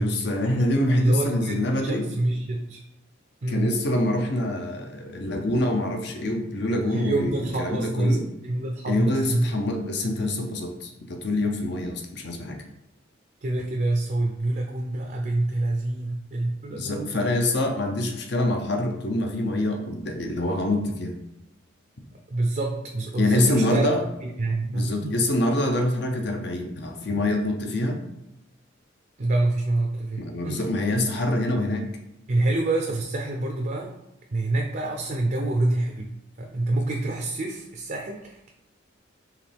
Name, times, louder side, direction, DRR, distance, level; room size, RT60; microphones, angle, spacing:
voice 1, 0.0-2.1 3.5-8.2 8.9-12.6 16.7-21.1 23.2-24.0 24.7-28.0 30.2-31.9, left 1 dB, 60° left, 3 dB, 0.7 m, -25 dB
voice 2, 1.0-2.8 3.4-3.7 6.9-9.5 13.4-17.2 22.3-23.9 24.2-25.1 29.2-30.7 32.3-33.9 34.3-38.5, right 2 dB, 45° right, 1 dB, 0.5 m, -26 dB
4.8 x 3.1 x 3.3 m, 0.87 s
head